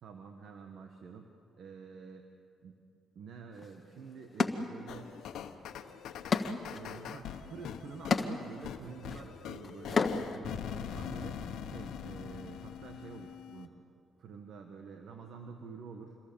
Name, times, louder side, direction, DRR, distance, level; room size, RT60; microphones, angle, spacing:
voice 1, 0.0-2.3 2.6-2.8 3.1-5.1 6.7-13.8 14.2-16.2, right 5 dB, 70° right, 4 dB, 1.6 m, -48 dB
sound 1, 3.6-3.7 4.4-5.3 5.6-10.5, left 4 dB, 40° left, 1.3 m, -34 dB
sound 2, 4.9-13.7, left 8 dB, 80° left, 1.2 m, -43 dB
27.0 x 22.0 x 7.1 m, 2.8 s
cardioid pair, 90°, 0 cm